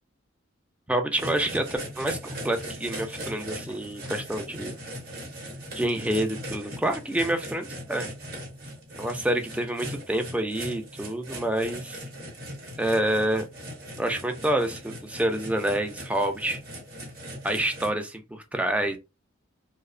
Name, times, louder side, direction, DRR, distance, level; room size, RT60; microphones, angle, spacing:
voice 1, 0.9-1.7 2.0-2.2 2.4-4.7 5.7-8.1 9.0-12.0 12.8-13.5 14.0-16.6 17.4-19.0, right 1 dB, 5° right, 0.3 m, -27 dB
sound 1, 1.2-17.9, right 1 dB, 50° right, 0.9 m, -39 dB
2.7 x 2.0 x 2.4 m
head